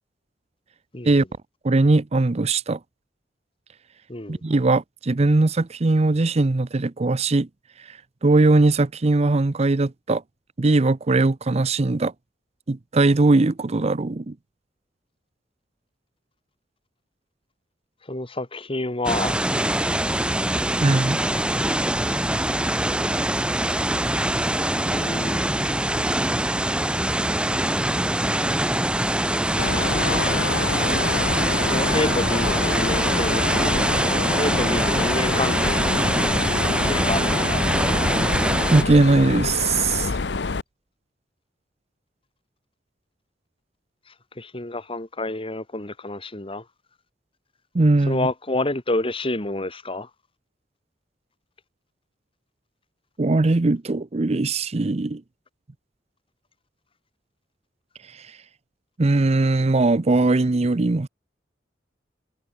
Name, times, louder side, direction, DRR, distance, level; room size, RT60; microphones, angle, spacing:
voice 1, 0.9-1.3 4.1-4.4 18.1-19.4 24.9-25.9 31.7-33.7 34.1-36.0 36.6-37.6 44.4-46.6 48.1-50.1, left 2 dB, 30° left, 2.5 m, -29 dB
voice 2, 1.6-2.8 4.3-7.5 7.9-10.2 10.6-12.1 12.7-14.3 20.8-21.2 38.7-40.1 47.7-48.3 53.2-55.2 58.2-58.3 59.0-61.1, right 2 dB, 35° right, 0.6 m, -20 dB
sound 1, 19.0-38.8, right 1 dB, 5° right, 1.0 m, -23 dB
Mechanisms, 29.6-40.6, left 4 dB, 70° left, 0.8 m, -27 dB
head